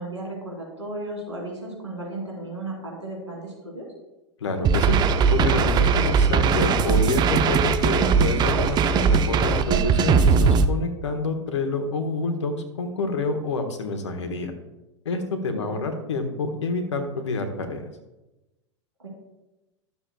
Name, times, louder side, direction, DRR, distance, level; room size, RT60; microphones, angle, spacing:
voice 1, 0.0-3.9 15.4-15.9 19.0-19.1, right 2 dB, 90° right, -2 dB, 3.0 m, -35 dB
voice 2, 4.4-5.0 5.3-14.5 15.0-17.8, left 3 dB, 75° left, 5 dB, 1.3 m, -28 dB
sound 1, 4.6-10.7, right 5 dB, 30° right, 0.5 m, -20 dB
12.0 x 6.9 x 2.4 m, 0.99 s
figure-of-eight pair, 85°, 15 cm